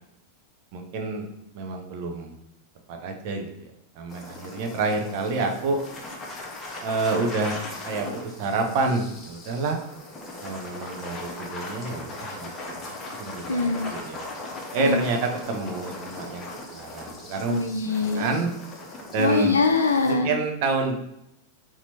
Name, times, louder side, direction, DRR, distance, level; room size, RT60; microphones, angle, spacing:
voice 1, 0.7-1.3 1.5-2.3 2.9-3.7 4.0-5.8 6.8-7.6 7.9-9.8 10.4-12.8 13.2-14.2 14.7-16.5 16.7-17.6 18.1-18.5 19.1-19.6 20.0-20.9, right 3 dB, 45° right, 3 dB, 0.8 m, -28 dB
sound 1, 4.1-20.1, left 2 dB, 20° left, 1.0 m, -39 dB
voice 2, 13.5-13.9 14.8-15.0 17.5-18.3 19.2-20.4, left 4 dB, 70° left, 5 dB, 0.5 m, -23 dB
4.3 x 2.9 x 4.2 m, 0.79 s
figure-of-eight pair, 90°, 0 cm